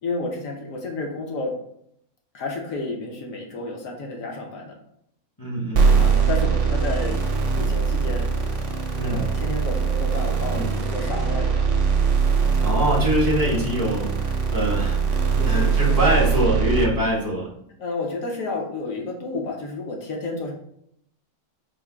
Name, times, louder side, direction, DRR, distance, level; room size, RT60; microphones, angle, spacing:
voice 1, 0.0-1.5 2.3-4.7 6.0-7.2 7.5-8.7 9.0-11.9 15.4-16.3 17.8-20.5, left 3 dB, 60° left, 0 dB, 1.0 m, -31 dB
voice 2, 5.4-6.0 8.9-9.3 10.5-10.7 12.6-17.5, equal, 30° left, -4 dB, 0.4 m, -24 dB
sound 1, 5.7-16.8, right 5 dB, 60° right, 0.8 m, -21 dB
4.7 x 2.1 x 4.4 m, 0.72 s
omnidirectional pair, 1.9 m